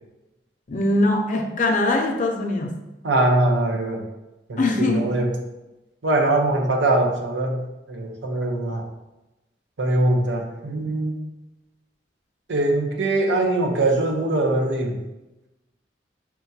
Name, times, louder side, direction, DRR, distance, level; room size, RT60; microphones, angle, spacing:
voice 1, 0.7-2.8 4.6-5.1, left 2 dB, 45° left, 3 dB, 0.5 m, -22 dB
voice 2, 3.0-4.0 4.5-5.3 6.0-7.6 7.9-8.9 9.8-11.2 12.5-15.0, right 2 dB, 90° right, 1 dB, 0.7 m, -22 dB
5.9 x 2.2 x 2.7 m, 1.0 s
head